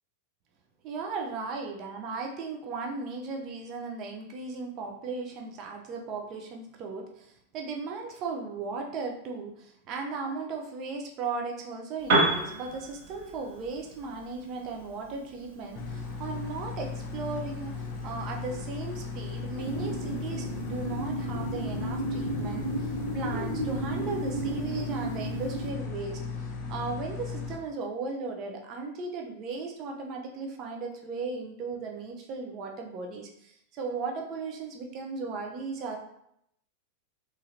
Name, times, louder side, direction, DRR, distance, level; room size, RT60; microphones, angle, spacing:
voice 1, 0.8-36.0, right 4 dB, 35° right, 2 dB, 0.6 m, -36 dB
Piano, 12.0-19.8, right 2 dB, 50° right, 1.3 m, -34 dB
sound 1, 15.8-27.6, left 5 dB, 35° left, 0.6 m, -36 dB
sound 2, 19.6-25.7, right 2 dB, 70° right, 0.8 m, -34 dB
3.6 x 3.1 x 2.8 m, 0.75 s
figure-of-eight pair, 90°, 0 cm